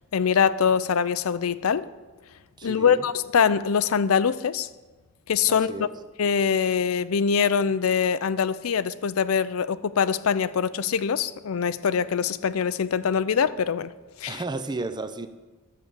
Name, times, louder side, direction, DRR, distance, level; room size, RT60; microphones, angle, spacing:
voice 1, 0.1-1.9 2.6-4.7 5.3-5.9 6.2-13.9 14.2-14.4, left 6 dB, 90° left, 15 dB, 0.5 m, -23 dB
voice 2, 2.6-3.0 5.5-5.9 14.3-15.3, right 3 dB, 20° right, 10 dB, 0.5 m, -33 dB
11.5 x 6.8 x 7.4 m, 1.2 s
head